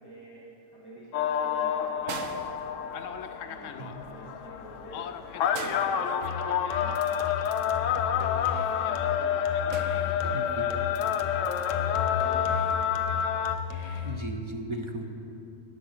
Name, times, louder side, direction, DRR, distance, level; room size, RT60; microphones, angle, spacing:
voice 1, 0.0-2.9 3.4-7.2 7.6-9.8 10.2-13.7, equal, 15° right, -7 dB, 1.6 m, -48 dB
sound 1, 1.1-13.5, left 9 dB, 70° left, 0.9 m, -29 dB
sound 2, 2.1-3.3 5.5-6.8 9.7-10.6 11.9-12.1, right 7 dB, 70° right, 1.0 m, -42 dB
sound 3, 6.2-14.2, left 6 dB, 90° left, 1.2 m, -35 dB
voice 2, 10.3-10.7 14.0-15.1, right 1 dB, 35° right, 3 dB, 0.5 m, -36 dB
11.5 x 6.0 x 8.0 m, 2.8 s
omnidirectional pair, 1.5 m